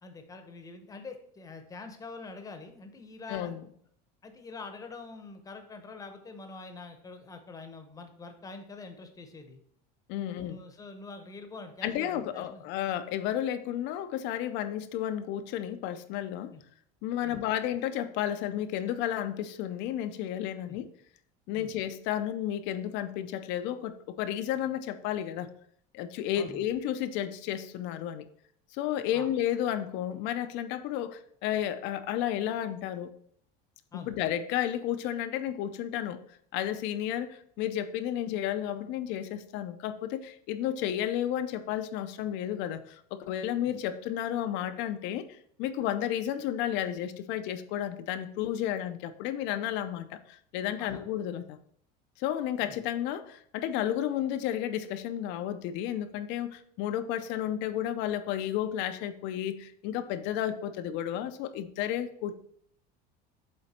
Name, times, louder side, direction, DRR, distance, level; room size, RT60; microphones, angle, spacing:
voice 1, 0.0-3.5 4.2-9.6 10.2-12.6 16.5-16.6 17.2-17.4 20.7-20.8 21.5-21.7 26.4-26.6 29.1-29.3 33.9-34.1 50.8-51.0 52.6-52.7, left 3 dB, 15° left, 6 dB, 0.9 m, -45 dB
voice 2, 3.3-3.6 10.1-10.6 11.8-16.5 17.0-20.9 21.5-25.5 25.9-28.3 28.7-33.1 33.9-36.2 36.5-51.6 52.2-62.4, left 11 dB, 60° left, 10 dB, 0.6 m, -32 dB
7.6 x 3.9 x 4.2 m, 0.65 s
cardioid pair, 140°, 21 cm